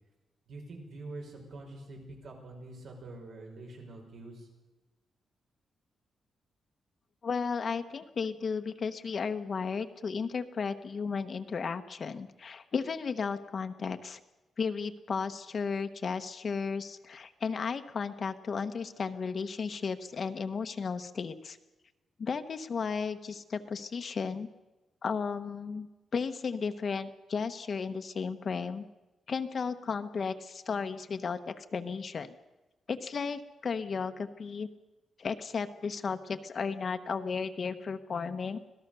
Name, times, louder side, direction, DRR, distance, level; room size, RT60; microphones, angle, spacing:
voice 1, 0.5-4.5, right 2 dB, 75° right, 1 dB, 6.1 m, -45 dB
voice 2, 7.2-14.2 14.6-21.6 22.2-24.5 25.0-25.9 26.1-28.9 29.3-32.3 32.9-34.7 35.2-38.6, left 5 dB, 50° left, 8 dB, 1.1 m, -34 dB
25.5 x 17.5 x 6.9 m, 1.1 s
cardioid pair, 120°, 0 cm